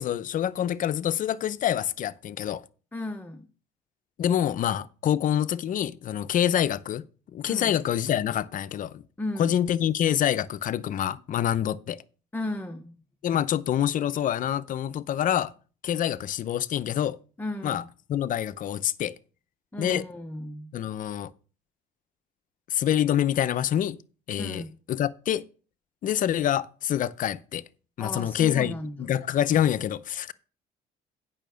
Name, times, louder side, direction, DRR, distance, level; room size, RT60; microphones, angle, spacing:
voice 1, 0.0-2.6 4.2-7.0 7.3-9.0 9.4-12.0 13.2-15.5 15.8-17.2 17.6-17.8 18.1-19.1 19.8-20.1 20.7-21.3 22.7-24.0 24.3-25.4 26.0-27.6 28.0-30.3, left 10 dB, 50° left, 0.6 m, -26 dB
voice 2, 2.9-3.5 7.5-7.8 9.2-9.6 12.3-13.0 17.4-17.9 19.7-20.7 24.4-24.7 28.0-29.1, left 1 dB, 10° left, 0.8 m, -35 dB
9.0 x 5.7 x 6.3 m
cardioid pair, 110°, 17 cm